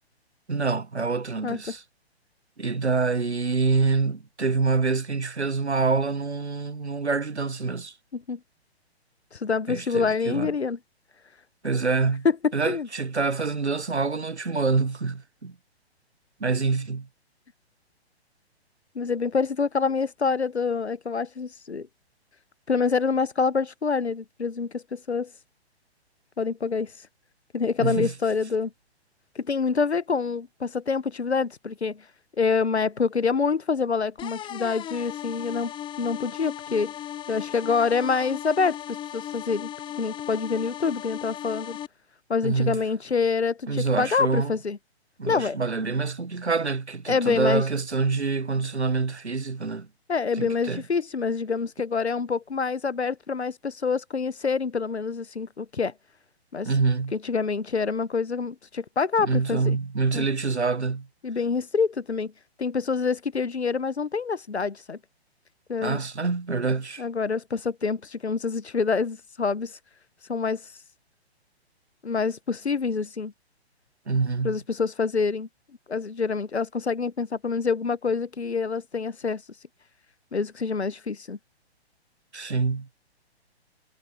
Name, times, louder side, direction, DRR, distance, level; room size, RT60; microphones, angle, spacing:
voice 1, 0.5-1.8 2.6-7.9 9.7-10.5 11.6-12.3 12.5-15.5 16.4-17.1 27.8-28.1 42.4-42.8 43.7-44.5 45.2-49.9 50.4-50.8 56.6-57.2 59.2-61.1 65.8-67.0 74.1-74.6 82.3-82.9, right 4 dB, 80° right, 1.1 m, -26 dB
voice 2, 1.4-1.7 8.1-8.4 9.3-10.8 12.2-12.4 12.6-12.9 18.9-21.9 22.7-25.3 26.4-26.9 27.5-28.7 29.3-32.0 32.4-35.7 36.0-36.9 37.3-39.7 40.0-41.8 42.3-44.8 45.3-45.6 47.1-47.6 50.1-55.9 56.5-56.7 57.1-59.8 60.1-60.3 61.2-62.3 62.6-65.0 65.7-66.0 67.0-69.7 70.3-70.6 72.0-73.3 74.4-75.5 75.9-79.4 80.3-81.4, left 5 dB, 75° left, 1.1 m, -26 dB
sound 1, 34.2-41.9, left 11 dB, 15° left, 4.8 m, -37 dB
figure-of-eight pair, 125°, 33 cm